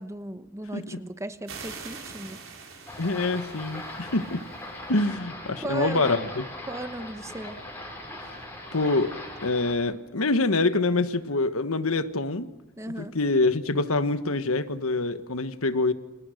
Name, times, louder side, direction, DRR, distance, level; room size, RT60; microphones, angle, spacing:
voice 1, 0.0-2.7 5.6-6.3 6.7-7.6 12.8-13.2, right 1 dB, 15° right, 1.1 m, -36 dB
sound 1, 1.5-4.8, right 5 dB, 65° right, 5.7 m, -44 dB
sound 2, 2.9-9.7, left 1 dB, 10° left, 6.8 m, -39 dB
voice 2, 3.0-4.4 4.9-6.4 8.7-9.1 9.4-12.5 12.9-15.9, left 3 dB, 85° left, 1.4 m, -25 dB
30.0 x 27.0 x 6.6 m
head